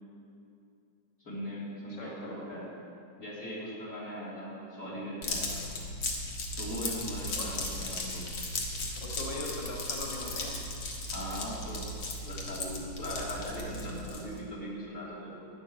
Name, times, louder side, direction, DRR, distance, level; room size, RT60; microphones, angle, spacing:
voice 1, 1.2-2.7 3.2-5.7 6.6-8.3 11.1-11.9 12.2-15.5, equal, 45° left, -6 dB, 3.9 m, -39 dB
voice 2, 1.9-2.6 7.3-7.5 9.0-10.6, left 1 dB, 20° left, -3 dB, 1.2 m, -40 dB
sound 1, 5.2-14.4, left 2 dB, 90° left, 2.3 m, -36 dB
11.5 x 7.7 x 9.8 m, 2.5 s
omnidirectional pair, 2.0 m